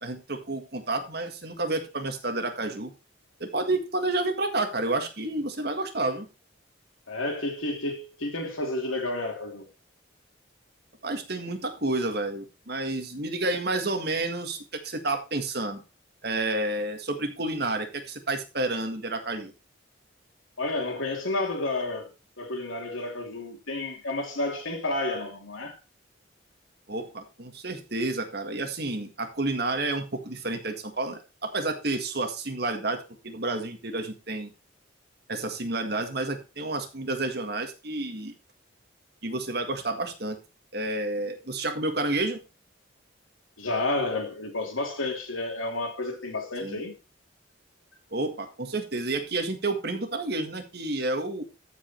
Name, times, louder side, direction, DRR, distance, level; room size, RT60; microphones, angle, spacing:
voice 1, 0.0-2.9 3.4-6.3 11.0-14.6 14.8-15.8 16.2-19.5 26.9-34.5 35.3-38.3 39.2-40.4 40.7-42.4 46.6-46.8 48.1-51.4, right 2 dB, 50° right, 1.8 m, -30 dB
voice 2, 7.1-9.7 20.6-22.1 22.4-25.8 43.6-46.9, left 2 dB, 90° left, 3.0 m, -31 dB
13.5 x 5.2 x 4.4 m
head